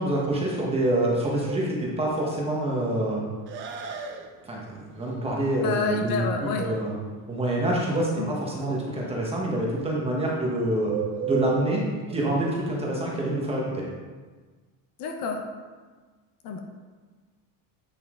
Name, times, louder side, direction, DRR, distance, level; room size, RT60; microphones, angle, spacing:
voice 1, 0.0-3.2 4.5-6.2 6.6-6.9 7.3-10.9 11.2-11.8 12.1-13.8, right 1 dB, 15° right, -4 dB, 1.2 m, -26 dB
Bird, 0.9-13.9, right 8 dB, 30° right, 0.5 m, -37 dB
voice 2, 5.6-6.7 8.1-8.4 12.9-13.0 15.0-15.4 16.4-16.6, left 5 dB, 55° left, 4 dB, 0.9 m, -29 dB
8.5 x 5.4 x 3.7 m, 1.4 s
cardioid pair, 175°, 42 cm